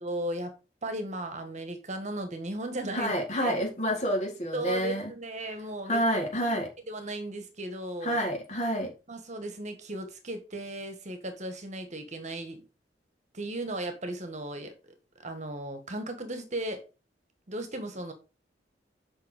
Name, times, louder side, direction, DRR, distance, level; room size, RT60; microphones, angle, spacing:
voice 1, 0.0-3.1 3.4-3.5 4.5-6.0 6.4-6.5 6.9-8.2 9.1-12.6 13.3-14.9 15.2-16.9 17.5-18.1, right 1 dB, 40° right, 1.6 m, -36 dB
voice 2, 2.9-5.1 5.9-6.7 8.0-8.9, equal, 40° left, 4.2 m, -28 dB
8.1 x 5.7 x 5.1 m
head